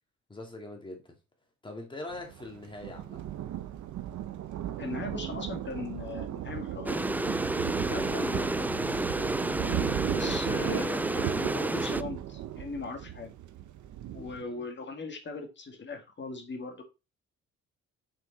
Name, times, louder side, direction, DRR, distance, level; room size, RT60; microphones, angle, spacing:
voice 1, 0.3-1.2 1.6-3.2 8.0-8.3 10.4-10.7 14.4-14.7, left 2 dB, 15° left, 2.3 m, -43 dB
Thunder, 2.1-14.4, right 12 dB, 70° right, 0.9 m, -36 dB
voice 2, 4.8-7.1 7.9-8.9 10.1-13.3 14.1-16.8, left 3 dB, 35° left, 1.8 m, -39 dB
sound 1, 6.9-12.0, right 2 dB, 5° right, 0.3 m, -30 dB
6.6 x 4.5 x 4.0 m
cardioid pair, 90°, 30 cm